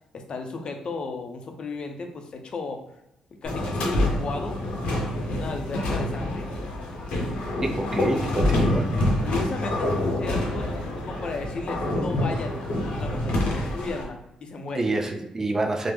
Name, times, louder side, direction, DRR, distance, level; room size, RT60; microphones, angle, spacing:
voice 1, 0.1-2.8 3.4-4.6 5.1-6.5 9.2-12.6 12.9-14.9, left 3 dB, 50° left, 4 dB, 0.5 m, -35 dB
sound 1, 3.4-14.0, left 1 dB, 80° left, 0.7 m, -27 dB
voice 2, 7.6-8.9 14.7-15.9, right 2 dB, 25° right, 3 dB, 0.4 m, -27 dB
3.3 x 2.0 x 3.3 m, 0.83 s
cardioid pair, 95°, 2 cm